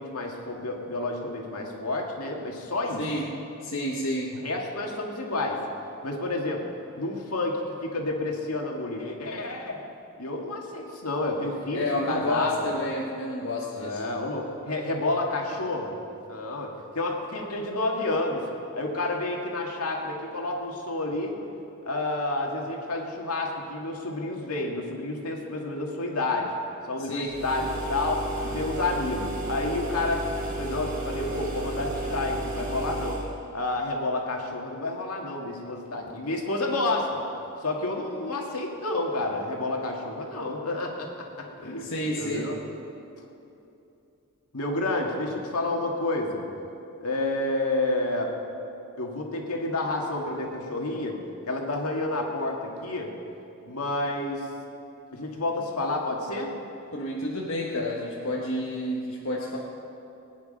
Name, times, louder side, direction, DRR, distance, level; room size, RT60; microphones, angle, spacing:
voice 1, 0.0-3.0 4.3-5.6 6.0-6.6 6.9-9.8 10.2-12.7 13.8-15.9 16.3-18.4 18.7-21.4 21.8-26.5 26.9-30.2 30.6-33.2 33.5-37.2 37.6-42.6 44.5-46.4 47.0-48.3 49.0-51.2 51.5-53.1 53.6-54.5 55.1-56.5, left 2 dB, 80° left, 0 dB, 2.0 m, -30 dB
voice 2, 3.6-4.3 11.7-14.0 27.0-27.3 41.8-42.5 56.9-59.6, left 1 dB, 60° left, -3 dB, 1.4 m, -30 dB
sound 1, 27.3-33.3, right 1 dB, 40° right, 3.7 m, -33 dB
20.5 x 9.7 x 5.3 m, 2.8 s
head